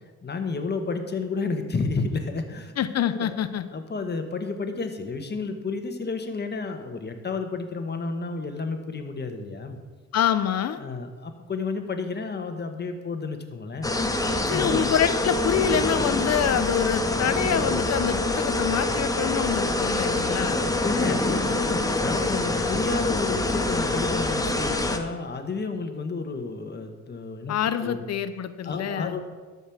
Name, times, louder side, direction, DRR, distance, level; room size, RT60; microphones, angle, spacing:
voice 1, 0.2-2.7 3.1-3.4 3.7-9.8 10.8-14.0 14.5-14.9 20.7-27.5 27.8-28.0 28.6-29.3, left 4 dB, 35° left, 6 dB, 1.5 m, -31 dB
voice 2, 2.8-3.7 10.1-10.8 14.5-20.6 27.5-29.2, left 9 dB, 60° left, 12 dB, 0.7 m, -26 dB
sound 1, 13.8-25.0, left 2 dB, 10° left, 1.1 m, -25 dB
12.5 x 5.5 x 7.2 m, 1.4 s
cardioid pair, 90°, 30 cm